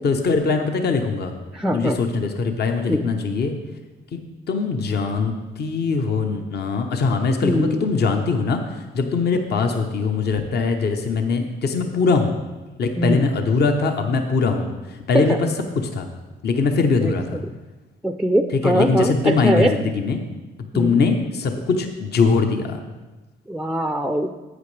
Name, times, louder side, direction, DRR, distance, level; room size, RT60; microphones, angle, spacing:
voice 1, 0.0-1.3 1.7-3.5 4.1-4.2 4.5-8.6 8.9-12.4 12.8-15.5 15.7-16.1 16.4-17.4 18.5-20.2 20.7-22.8, left 4 dB, 55° left, 5 dB, 0.9 m, -21 dB
voice 2, 1.5-2.0 2.9-3.1 7.4-7.8 13.0-13.3 15.1-15.4 17.0-17.1 18.0-19.8 20.7-21.0 23.5-24.3, right 1 dB, ahead, 7 dB, 0.4 m, -21 dB
11.5 x 8.5 x 3.3 m, 1.2 s
cardioid pair, 90°, 20 cm